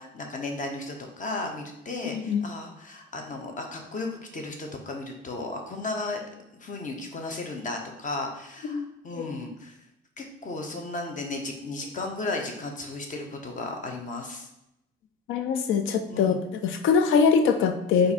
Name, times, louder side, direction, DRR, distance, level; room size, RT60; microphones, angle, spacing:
voice 1, 0.0-6.2 6.6-9.7 10.2-14.5 16.1-16.4, left 2 dB, 40° left, 3 dB, 0.9 m, -35 dB
voice 2, 2.1-2.4 8.7-8.9 9.1-9.2 15.3-16.4 16.6-18.1, left 6 dB, 80° left, 7 dB, 0.4 m, -23 dB
4.2 x 2.6 x 4.1 m, 0.84 s
cardioid pair, 90°, 20 cm